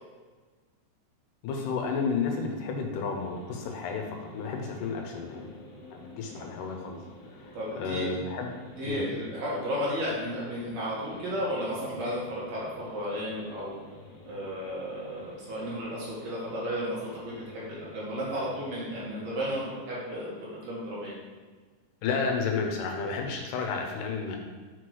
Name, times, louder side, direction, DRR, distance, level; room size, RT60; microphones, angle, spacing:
voice 1, 1.4-5.6 5.9-7.0 7.3-8.5 8.9-9.0 22.0-24.4, left 5 dB, 85° left, 2 dB, 2.3 m, -32 dB
sound 1, 3.2-19.5, left 2 dB, 60° left, 1.9 m, -49 dB
voice 2, 7.5-8.1 8.7-13.7 14.2-21.1, equal, 60° right, -7 dB, 2.7 m, -33 dB
6.1 x 5.2 x 3.1 m, 1.4 s
omnidirectional pair, 3.8 m